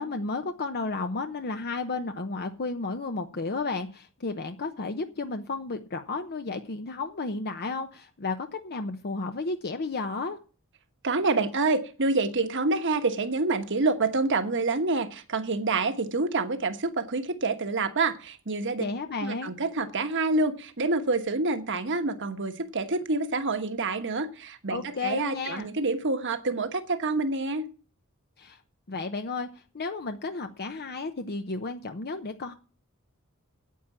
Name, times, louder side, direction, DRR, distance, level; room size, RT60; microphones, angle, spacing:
voice 1, 0.0-10.4 18.8-19.5 24.7-25.7 28.4-28.6 28.9-32.5, left 3 dB, 45° left, 7 dB, 0.8 m, -33 dB
voice 2, 11.0-18.8 19.2-27.7, right 3 dB, 55° right, 8 dB, 1.3 m, -27 dB
9.4 x 8.9 x 7.1 m, 0.38 s
head